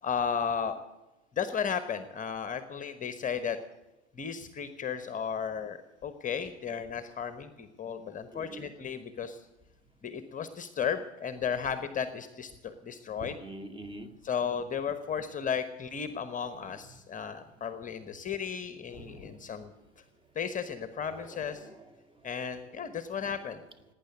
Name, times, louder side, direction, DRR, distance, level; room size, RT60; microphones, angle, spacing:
voice 1, 0.0-0.7 1.4-3.6 4.2-9.5 10.0-13.3 14.2-19.7 20.3-21.7 22.2-23.6, left 7 dB, 25° left, 11 dB, 1.1 m, -34 dB
voice 2, 8.3-8.7 13.2-14.1 15.7-17.0 17.4-17.5 18.0-18.1 18.9-19.5 20.9-22.5 23.7-23.8, right 2 dB, 15° right, 6 dB, 2.0 m, -48 dB
18.5 x 9.5 x 8.0 m, 1.0 s
figure-of-eight pair, 80°, 34 cm